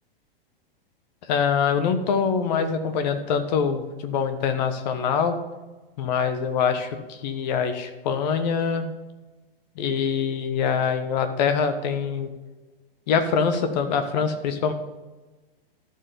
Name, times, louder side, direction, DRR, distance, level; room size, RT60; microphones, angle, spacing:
voice 1, 1.3-5.4 6.0-8.9 9.8-12.3 13.1-14.7, left 6 dB, 45° left, 9 dB, 1.2 m, -24 dB
13.0 x 4.6 x 5.2 m, 1.2 s
figure-of-eight pair, 105°, 29 cm